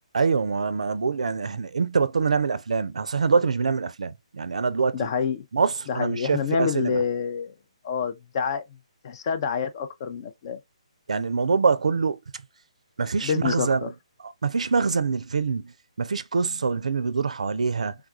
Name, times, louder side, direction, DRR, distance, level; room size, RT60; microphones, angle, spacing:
voice 1, 0.1-5.1 5.5-7.0 11.1-12.2 13.0-13.9 14.2-15.7 16.0-18.0, right 5 dB, 80° right, 0.4 m, -25 dB
voice 2, 4.9-5.4 5.9-7.5 7.8-8.6 9.0-10.6 13.2-13.9, left 6 dB, 40° left, 0.5 m, -27 dB
3.4 x 2.4 x 2.3 m
hypercardioid pair, 145°, 4 cm